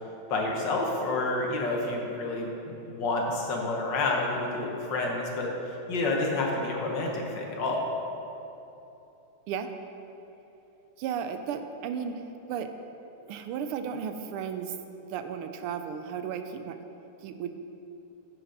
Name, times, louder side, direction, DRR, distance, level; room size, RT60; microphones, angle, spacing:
voice 1, 0.3-7.9, left 2 dB, 60° left, 0 dB, 1.6 m, -29 dB
voice 2, 11.0-12.2 12.5-12.7 13.2-14.7 15.1-16.8 17.2-17.5, right 7 dB, 85° right, 8 dB, 1.5 m, -34 dB
8.7 x 5.0 x 6.5 m, 2.9 s
omnidirectional pair, 2.4 m